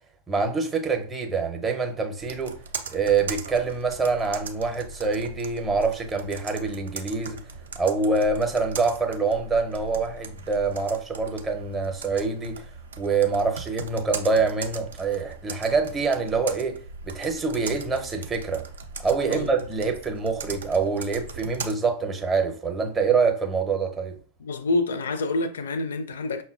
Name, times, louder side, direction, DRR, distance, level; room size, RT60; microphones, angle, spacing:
voice 1, 0.3-2.6 2.9-7.4 7.8-12.6 13.0-16.8 17.0-18.6 19.0-24.1, right 4 dB, 15° right, 0.7 m, -25 dB
Computer keyboard, 2.2-21.7, right 4 dB, 65° right, 0.4 m, -39 dB
voice 2, 24.4-26.4, left 2 dB, 65° left, 0.4 m, -27 dB
5.5 x 2.1 x 2.4 m
figure-of-eight pair, 90°, 0 cm